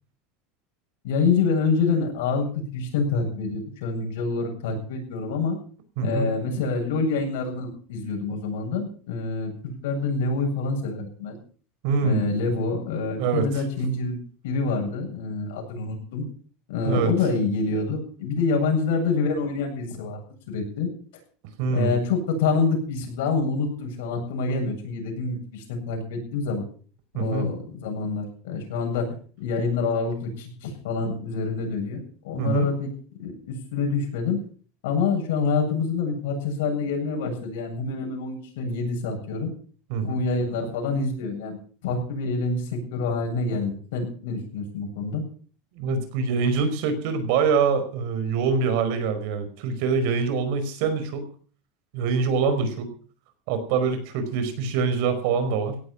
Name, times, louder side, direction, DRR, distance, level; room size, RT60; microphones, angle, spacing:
voice 1, 1.0-5.6 6.0-11.4 12.0-16.3 16.7-20.2 20.5-20.9 21.6-26.6 27.2-29.1 29.4-32.9 33.2-34.4 34.8-39.5 40.0-41.6 41.8-45.2, left 4 dB, 90° left, 2 dB, 7.9 m, -26 dB
voice 2, 6.0-6.3 11.8-12.3 13.2-13.5 16.8-17.1 21.6-21.9 27.1-27.5 32.4-32.7 39.9-40.2 45.8-51.3 51.9-52.9 53.5-55.8, right 5 dB, 65° right, 10 dB, 4.9 m, -24 dB
17.5 x 11.5 x 6.1 m, 0.43 s
supercardioid pair, 155°, 0 cm